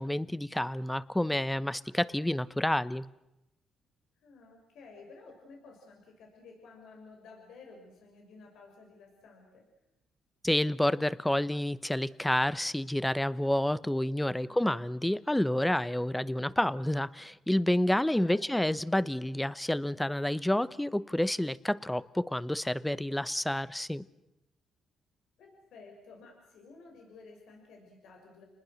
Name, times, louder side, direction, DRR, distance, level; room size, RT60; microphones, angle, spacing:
voice 1, 0.0-3.1 10.4-24.0, left 1 dB, 5° left, 17 dB, 0.9 m, -29 dB
voice 2, 4.2-9.6 14.4-14.7 18.2-18.6 25.4-28.4, left 4 dB, 80° left, 1 dB, 6.1 m, -53 dB
29.5 x 20.5 x 6.6 m, 0.91 s
cardioid pair, 90°, 0 cm